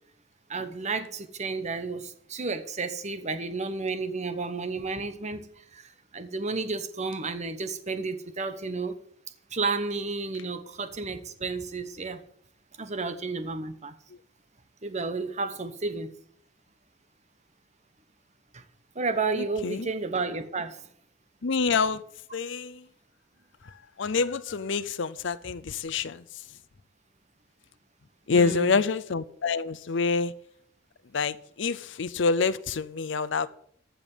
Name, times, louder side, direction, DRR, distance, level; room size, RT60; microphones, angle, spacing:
voice 1, 0.5-9.0 9.5-12.2 12.8-13.9 14.8-16.1 18.5-18.6 18.9-20.9 28.3-28.8, right 4 dB, 35° right, 1.1 m, -32 dB
voice 2, 21.4-22.0 22.3-22.8 24.0-26.2 28.3-30.3 31.1-33.5, left 4 dB, 65° left, 0.6 m, -27 dB
14.5 x 5.3 x 8.9 m
head